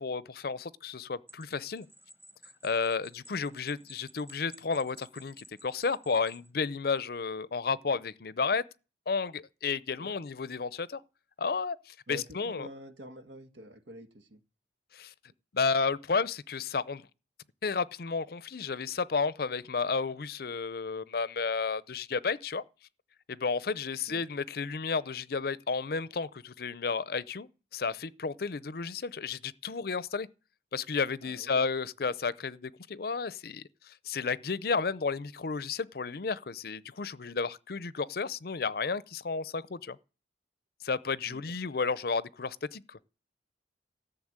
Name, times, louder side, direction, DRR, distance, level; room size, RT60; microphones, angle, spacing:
voice 1, 0.0-1.9 2.6-8.6 9.1-11.0 11.4-12.7 14.9-15.1 15.5-17.1 17.6-22.6 23.3-30.3 30.7-40.0 40.8-43.0, left 4 dB, 55° left, 0.6 m, -32 dB
sound 1, 1.3-6.5, equal, 15° right, 1.1 m, -56 dB
voice 2, 12.1-14.4 24.1-24.3 31.2-31.6 41.3-41.6, equal, 85° right, 1.7 m, -47 dB
14.5 x 6.9 x 8.8 m
head